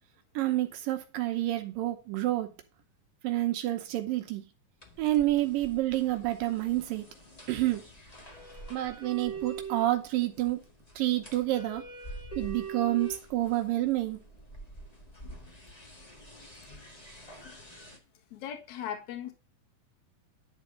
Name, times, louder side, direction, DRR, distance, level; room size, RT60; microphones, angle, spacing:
voice 1, 0.4-2.5 3.2-4.4 5.0-7.1 7.5-7.8 8.7-10.6 11.0-11.8 12.4-14.2, right 15 dB, 75° right, 2.5 m, -28 dB
sound 1, 4.8-18.0, right 4 dB, 30° left, 0.7 m, -45 dB
voice 2, 18.3-19.3, left 9 dB, 60° left, 2.7 m, -38 dB
11.0 x 4.1 x 6.6 m
omnidirectional pair, 4.1 m